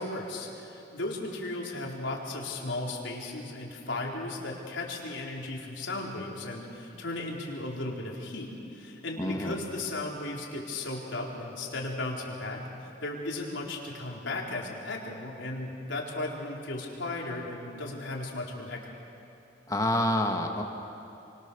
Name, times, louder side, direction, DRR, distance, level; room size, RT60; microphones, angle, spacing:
voice 1, 0.0-12.6 13.0-18.9, left 2 dB, 85° left, -2 dB, 4.4 m, -36 dB
voice 2, 9.2-9.5 19.7-20.6, left 1 dB, 20° left, 3 dB, 1.9 m, -27 dB
29.5 x 25.0 x 7.1 m, 2.8 s
head